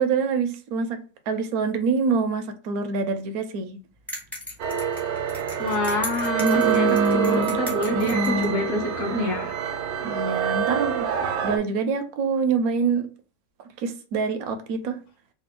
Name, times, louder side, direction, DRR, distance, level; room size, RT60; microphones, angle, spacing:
voice 1, 0.0-3.7 6.4-7.5 7.9-8.6 10.0-11.1 11.4-13.1 13.8-15.0, right 4 dB, 65° right, 1.0 m, -25 dB
sound 1, 4.1-8.5, left 1 dB, ahead, 0.8 m, -37 dB
sound 2, 4.6-11.6, right 9 dB, 85° right, 1.3 m, -26 dB
voice 2, 5.6-9.5, left 1 dB, 55° left, 1.0 m, -26 dB
3.3 x 2.6 x 3.6 m
omnidirectional pair, 1.9 m